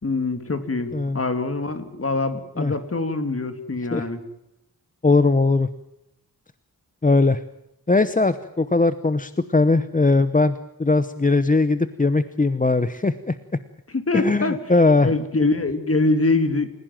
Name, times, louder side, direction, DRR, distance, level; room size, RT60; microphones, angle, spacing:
voice 1, 0.0-4.2 13.9-14.6 15.0-16.7, left 3 dB, 40° left, 9 dB, 3.0 m, -24 dB
voice 2, 5.0-5.7 7.0-7.4 7.9-13.4 14.1-15.1, left 3 dB, 25° left, 13 dB, 0.9 m, -19 dB
29.5 x 16.5 x 7.5 m, 0.85 s
wide cardioid pair, 115°, 35 cm